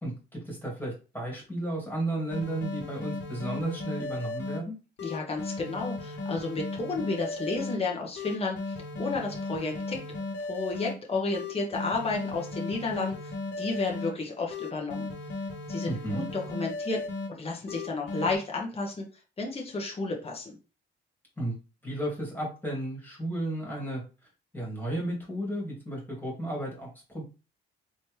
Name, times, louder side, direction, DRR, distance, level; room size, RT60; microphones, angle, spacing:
voice 1, 0.0-4.8 15.9-16.3 21.4-21.5 21.8-24.0 24.5-27.2, right 1 dB, 10° left, -3 dB, 2.5 m, -33 dB
sound 1, 2.3-4.6 5.0-7.8 8.2-10.9 11.3-14.1 14.5-17.3 17.7-18.4, left 3 dB, 65° left, 1.3 m, -36 dB
voice 2, 5.0-10.0 10.4-15.1 15.7-19.0 19.4-20.6, left 3 dB, 30° left, -1 dB, 1.2 m, -32 dB
4.3 x 3.1 x 3.2 m, 0.32 s
cardioid pair, 90°, 20 cm